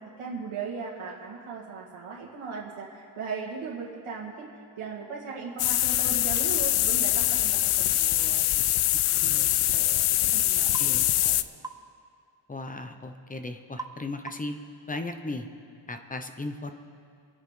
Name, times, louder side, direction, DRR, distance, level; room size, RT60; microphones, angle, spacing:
voice 1, 0.0-4.5 4.8-8.4 9.2-9.4 9.7-10.0 10.3-10.8 11.2-11.4, right 5 dB, 85° right, -4 dB, 1.9 m, -38 dB
sound 1, 5.6-11.4, left 14 dB, 85° left, 0.6 m, -24 dB
voice 2, 9.2-9.5 10.8-11.1 12.5-14.6 14.9-15.5 15.9-16.7, left 2 dB, 15° left, 6 dB, 0.7 m, -36 dB
sound 2, 10.7-10.9 11.6-11.9 13.8-14.0 14.3-14.6, right 3 dB, 10° right, 0.4 m, -40 dB
28.0 x 9.5 x 3.7 m, 2.3 s
wide cardioid pair, 155°, 49 cm